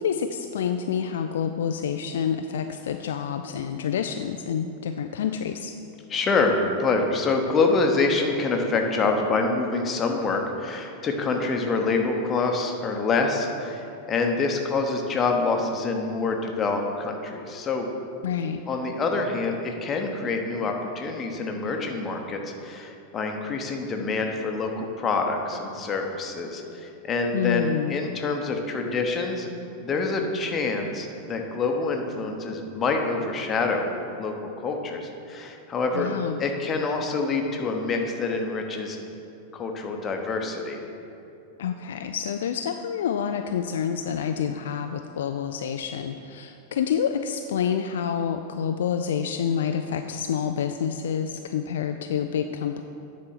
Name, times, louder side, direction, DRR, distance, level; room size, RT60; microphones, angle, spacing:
voice 1, 0.0-5.8 18.2-18.6 27.3-28.0 35.9-36.4 41.6-52.8, left 8 dB, 60° left, 6 dB, 0.3 m, -28 dB
voice 2, 6.1-17.9 18.7-29.5 29.8-33.9 34.2-36.1 36.4-39.0 39.5-40.8, left 3 dB, 25° left, 3 dB, 1.0 m, -26 dB
9.9 x 4.3 x 5.8 m, 2.7 s
figure-of-eight pair, 90°, 0 cm